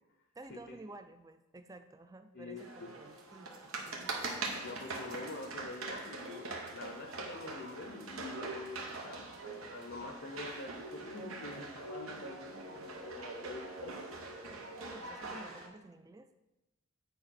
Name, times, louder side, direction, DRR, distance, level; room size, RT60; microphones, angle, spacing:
voice 1, 0.4-4.2 14.8-16.4, right 2 dB, 15° right, 9 dB, 0.4 m, -52 dB
voice 2, 2.3-2.9 4.6-14.1, left 2 dB, 65° left, 3 dB, 0.8 m, -46 dB
sound 1, 2.6-15.7, right 3 dB, 90° right, 1.3 m, -44 dB
sound 2, 4.0-5.9 6.2-15.7, right 2 dB, 65° right, 0.9 m, -49 dB
9.1 x 5.0 x 4.3 m, 0.99 s
head